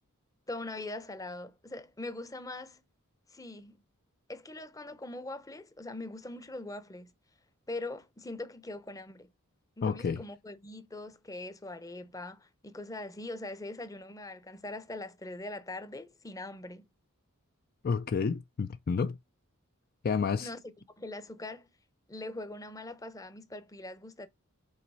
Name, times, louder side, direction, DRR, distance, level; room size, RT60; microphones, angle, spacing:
voice 1, 0.5-2.8 3.3-3.8 4.3-7.1 7.7-9.3 9.8-16.9 20.4-20.6 21.0-21.7 22.1-24.3, left 2 dB, 15° left, 0.7 m, -42 dB
voice 2, 9.8-10.2 17.8-19.2 20.0-20.5, left 5 dB, 45° left, 0.4 m, -30 dB
5.6 x 4.0 x 5.5 m
head